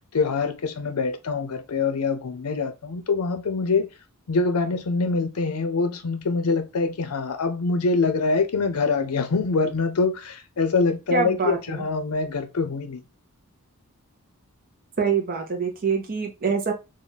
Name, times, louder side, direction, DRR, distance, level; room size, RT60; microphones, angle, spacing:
voice 1, 0.1-3.9 4.3-13.0, left 4 dB, 75° left, 0.6 m, -24 dB
voice 2, 11.1-11.8 15.0-16.7, right 5 dB, 40° right, 0.6 m, -25 dB
3.1 x 2.3 x 2.7 m
head